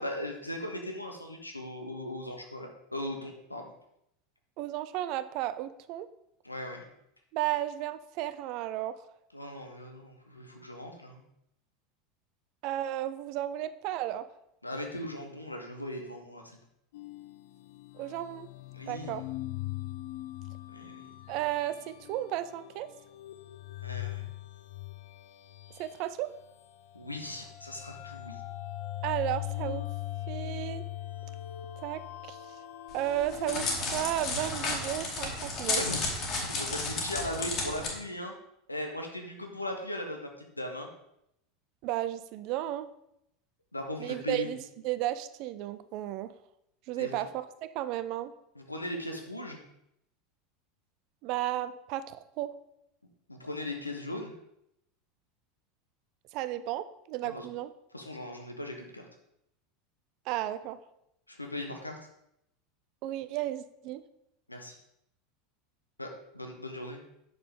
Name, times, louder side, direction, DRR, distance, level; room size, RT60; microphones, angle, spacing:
voice 1, 0.0-3.6 6.4-6.9 9.3-11.2 14.6-16.6 18.7-19.1 20.7-21.0 23.8-24.3 26.9-28.4 35.7-36.0 36.5-38.3 38.7-40.9 43.7-44.5 47.0-47.2 48.5-49.6 53.3-54.3 57.2-57.5 57.9-59.0 61.3-62.0 64.5-64.8 66.0-67.0, left 1 dB, 85° left, 3 dB, 1.1 m, -38 dB
voice 2, 4.6-6.1 7.3-9.0 12.6-14.3 18.0-18.5 18.9-19.2 21.3-22.9 25.8-26.3 29.0-29.9 30.3-30.8 31.8-32.6 32.9-35.8 41.8-42.9 44.0-44.6 44.8-46.3 46.9-48.3 51.2-52.5 56.3-57.7 60.3-60.8 63.0-64.0, right 13 dB, 45° right, 13 dB, 0.5 m, -33 dB
sound 1, 16.9-26.0 26.3-33.7, left 15 dB, 60° left, 0.5 m, -41 dB
Crackle, 32.9-37.9, left 3 dB, 40° left, 2.2 m, -32 dB
8.5 x 6.6 x 3.7 m, 0.79 s
figure-of-eight pair, 80°, 0 cm